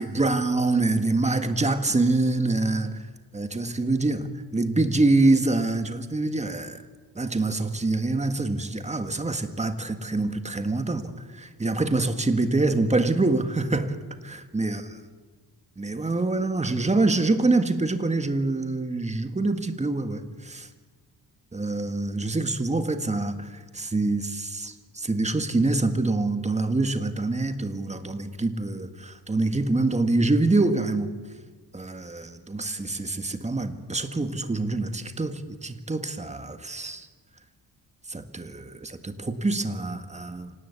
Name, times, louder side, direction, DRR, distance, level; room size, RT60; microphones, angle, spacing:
voice 1, 0.0-3.0 3.3-6.8 7.1-14.0 14.2-14.8 15.8-20.7 21.5-31.1 31.7-37.1 38.1-40.5, right 2 dB, 15° right, 8 dB, 1.7 m, -25 dB
25.5 x 18.5 x 8.3 m, 1.4 s
cardioid pair, 110°, 39 cm